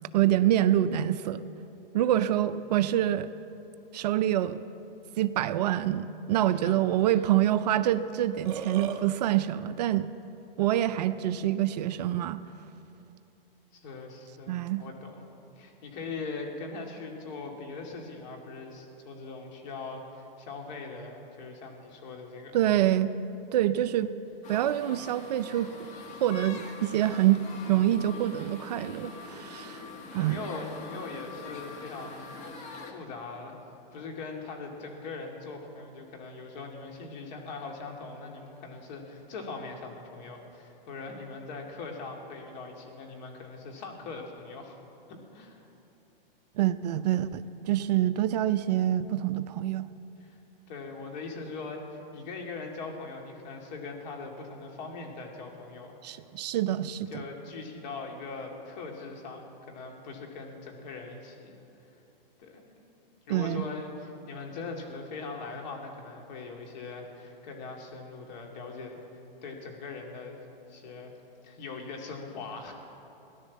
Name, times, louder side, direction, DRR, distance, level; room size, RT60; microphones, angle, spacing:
voice 1, 0.1-1.4 1.9-3.3 3.9-4.6 5.2-10.1 10.6-12.4 14.5-14.8 22.5-23.1 23.5-24.1 24.5-25.7 26.2-27.4 27.7-29.8 30.1-30.4 46.6-49.9 56.0-57.2 63.3-63.6, right 12 dB, 45° right, 12 dB, 0.5 m, -26 dB
voice 2, 6.4-6.8 7.1-7.4 13.7-15.3 15.5-22.6 29.6-32.3 32.6-33.6 33.9-44.8 45.1-45.7 50.2-50.4 50.7-56.2 57.1-61.9 62.4-62.9 63.3-69.0 69.4-71.1 71.4-72.8, left 3 dB, 50° left, 2 dB, 2.7 m, -41 dB
Burping eructation, 8.2-9.0, right 8 dB, 60° right, 1.5 m, -35 dB
sound 1, 24.4-32.9, left 3 dB, 25° left, 1.5 m, -43 dB
17.5 x 11.0 x 7.3 m, 2.9 s
hypercardioid pair, 140°, 29 cm